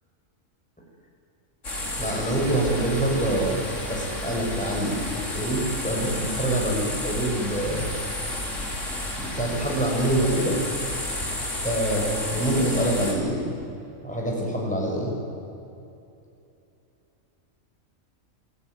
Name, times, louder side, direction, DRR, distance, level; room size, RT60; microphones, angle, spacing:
sound 1, 1.6-13.1, left 1 dB, 65° left, 4.1 m, -31 dB
voice 1, 2.0-3.6 3.8-7.9 9.2-10.6 11.6-13.5 14.0-15.2, right 1 dB, 5° left, -2 dB, 6.7 m, -25 dB
27.0 x 18.0 x 9.7 m, 2.7 s
omnidirectional pair, 1.4 m